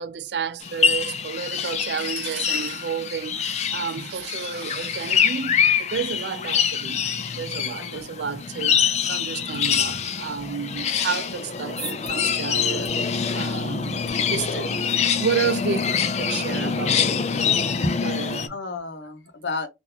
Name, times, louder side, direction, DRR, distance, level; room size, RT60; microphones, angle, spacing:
voice 1, 0.0-7.0 7.4-12.9 13.3-14.8 15.2-17.0 18.0-18.6, right 6 dB, 75° right, 0.4 m, -31 dB
sound 1, 0.6-18.5, left 7 dB, 40° left, 0.4 m, -25 dB
sound 2, 11.4-17.7, right 4 dB, 45° right, 1.5 m, -46 dB
voice 2, 18.5-19.7, left 2 dB, 85° left, 0.8 m, -31 dB
3.8 x 2.5 x 2.8 m
head